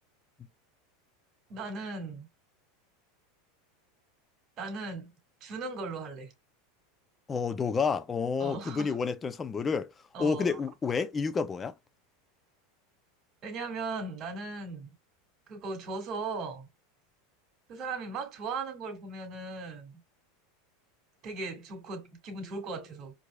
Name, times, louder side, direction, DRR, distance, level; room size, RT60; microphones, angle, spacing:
voice 1, 1.5-2.3 4.6-5.1 5.4-6.3 8.4-8.9 10.1-10.6 13.4-14.9 15.5-16.7 17.7-20.0 21.2-23.1, right 3 dB, 45° right, 2.0 m, -38 dB
voice 2, 7.3-9.9 10.2-11.7, left 5 dB, 25° left, 0.5 m, -29 dB
4.6 x 2.8 x 2.2 m
hypercardioid pair, 95°, 0 cm